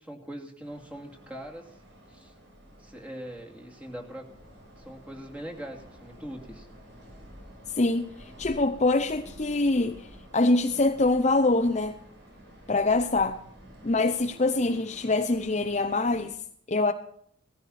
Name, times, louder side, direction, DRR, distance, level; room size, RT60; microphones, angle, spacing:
voice 1, 0.0-1.8 2.1-2.3 2.8-4.3 4.5-6.7, equal, 5° right, 2.6 m, -42 dB
sound 1, 0.6-16.3, equal, 60° right, 7.7 m, -50 dB
voice 2, 7.8-8.1 8.4-10.0 10.3-12.0 12.7-13.4 13.8-16.3 16.7-16.9, left 2 dB, 35° left, 0.7 m, -24 dB
17.5 x 15.0 x 4.2 m
head